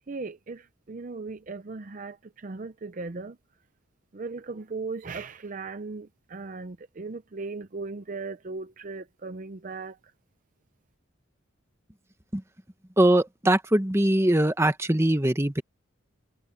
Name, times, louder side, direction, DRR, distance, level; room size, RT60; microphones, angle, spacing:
voice 1, 0.1-3.4 4.1-10.0, right 3 dB, 40° right, 0.6 m, -37 dB
voice 2, 13.0-15.6, right 1 dB, 15° right, 1.2 m, -22 dB
head